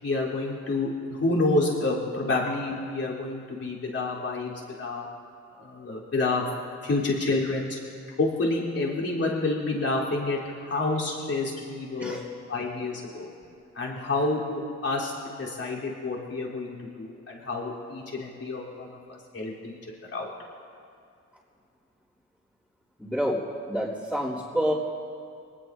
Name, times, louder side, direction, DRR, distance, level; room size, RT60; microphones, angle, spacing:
voice 1, 0.0-4.5 4.8-5.1 5.6-6.4 6.8-7.8 8.2-12.2 12.5-13.3 13.8-19.8 20.1-20.3, left 2 dB, 55° left, -6 dB, 3.7 m, -28 dB
voice 2, 23.0-23.4 23.7-24.7, equal, 5° left, -11 dB, 3.1 m, -27 dB
24.5 x 19.0 x 2.7 m, 2.4 s
wide cardioid pair, 110°, 30 cm